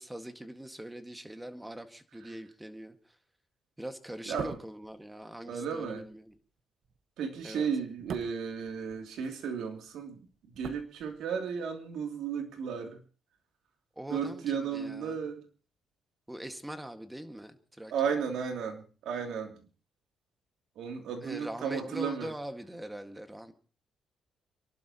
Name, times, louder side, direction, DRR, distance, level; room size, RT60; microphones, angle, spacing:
voice 1, 0.0-3.2 3.8-6.4 7.4-7.7 14.0-15.2 16.3-17.9 21.2-23.5, right 1 dB, 10° right, 1.9 m, -42 dB
sound 1, 4.2-9.5 9.8-11.6 11.9-12.0, right 6 dB, 60° right, 1.3 m, -46 dB
voice 2, 4.3-4.6 5.5-6.1 7.2-10.2 10.6-13.0 14.1-15.4 17.9-19.5 20.8-22.3, right 6 dB, 80° right, 3.0 m, -34 dB
29.0 x 12.0 x 3.0 m
cardioid pair, 90°, 0 cm